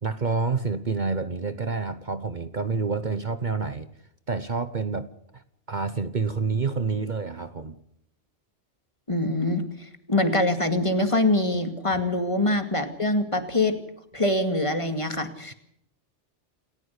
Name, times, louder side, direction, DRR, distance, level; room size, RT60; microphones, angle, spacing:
voice 1, 0.0-3.9 4.3-5.1 5.3-5.4 5.7-7.8, right 4 dB, 45° right, 11 dB, 1.1 m, -28 dB
voice 2, 9.1-9.6 10.1-13.7 14.1-15.5, left 2 dB, 25° left, 7 dB, 2.3 m, -24 dB
28.5 x 14.5 x 8.2 m, 0.74 s
omnidirectional pair, 1.2 m